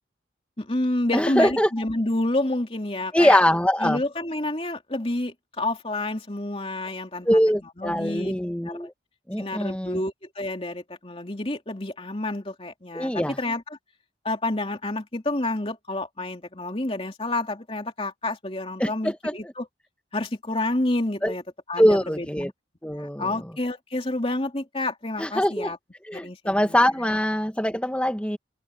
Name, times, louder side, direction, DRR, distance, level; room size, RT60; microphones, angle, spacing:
voice 1, 0.6-3.4 3.8-7.3 7.8-8.3 8.6-8.9 9.4-13.1 13.4-13.6 14.2-19.7 20.1-21.4 21.7-22.3 23.0-25.8 26.1-27.1, left 2 dB, 30° left, 2.8 m, -29 dB
voice 2, 1.1-1.7 3.1-4.0 7.2-8.9 9.3-10.0 12.9-13.4 18.8-19.5 21.2-21.3 21.8-22.5 22.8-23.4 25.2-25.7 26.1-28.4, equal, 5° left, 1.7 m, -23 dB
open air
head